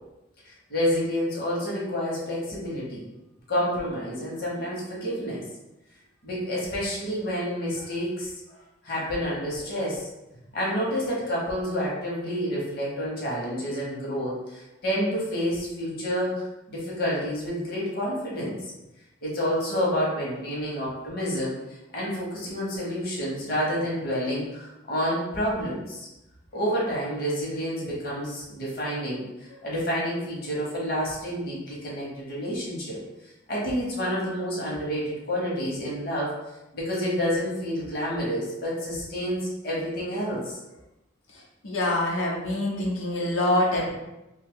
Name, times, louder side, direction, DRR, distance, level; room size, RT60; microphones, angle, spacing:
voice 1, 0.4-3.1 3.5-5.4 6.2-8.3 8.8-10.1 10.5-18.6 19.2-26.1 26.5-33.0 33.5-36.3 36.7-40.6, equal, 50° left, -5 dB, 0.9 m, -29 dB
voice 2, 41.6-43.9, left 1 dB, 90° left, -4 dB, 0.8 m, -25 dB
2.7 x 2.3 x 3.6 m, 0.95 s
head